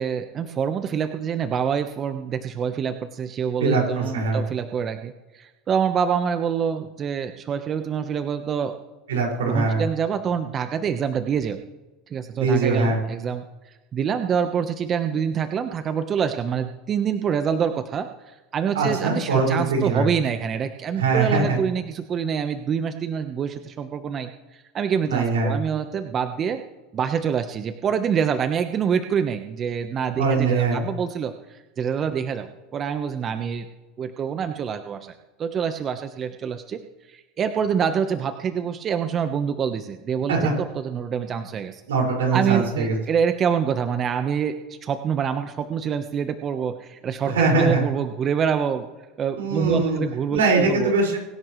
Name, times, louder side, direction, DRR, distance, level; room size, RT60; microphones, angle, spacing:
voice 1, 0.0-8.7 9.4-11.6 12.1-13.4 13.9-26.6 26.9-33.7 34.0-35.1 35.4-36.8 37.1-41.8 42.3-48.9 49.2-50.9, right 7 dB, 35° right, 8 dB, 1.1 m, -26 dB
voice 2, 3.6-4.4 9.1-9.8 12.4-13.0 18.7-20.0 21.0-21.6 25.1-25.6 30.2-30.8 40.3-40.5 41.9-43.0 47.2-47.8 49.4-50.0 50.3-51.2, right 3 dB, 90° right, -1 dB, 5.6 m, -22 dB
24.5 x 11.0 x 3.2 m, 1.1 s
hypercardioid pair, 95°, 0 cm